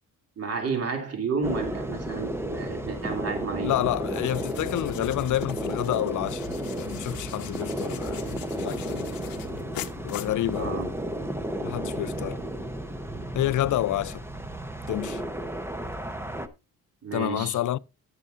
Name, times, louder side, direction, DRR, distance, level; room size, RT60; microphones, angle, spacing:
voice 1, 0.4-3.8 10.6-10.9 13.1-13.3 17.0-17.6, right 5 dB, 45° right, 2.7 m, -31 dB
sound 1, 1.4-16.5, right 1 dB, 5° right, 0.8 m, -33 dB
voice 2, 3.6-6.5 6.7-8.2 8.6-9.1 10.0-10.8 11.6-12.4 13.3-14.2 14.9-15.2 17.1-17.8, left 13 dB, 60° left, 0.5 m, -28 dB
sound 2, 4.0-11.0, left 11 dB, 85° left, 1.0 m, -42 dB
14.0 x 9.8 x 2.5 m
cardioid pair, 135°, 34 cm